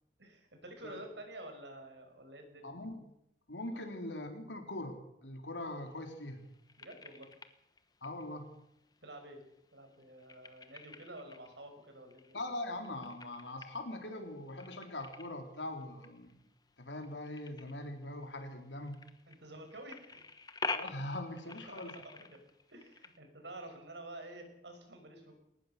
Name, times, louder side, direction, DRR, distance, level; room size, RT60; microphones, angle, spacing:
voice 1, 0.2-2.8 3.7-3.9 6.8-7.3 9.0-9.4 9.7-12.4 19.3-20.3 21.4-22.4 22.7-25.4, right 1 dB, 75° right, 5 dB, 6.0 m, -50 dB
voice 2, 2.6-3.0 3.5-6.4 8.0-8.5 12.3-16.4 16.8-19.1 20.7-21.9, left 1 dB, 85° left, 4 dB, 3.9 m, -42 dB
sound 1, 5.6-23.2, left 4 dB, 20° left, 1.2 m, -48 dB
20.5 x 19.5 x 6.8 m, 0.78 s
head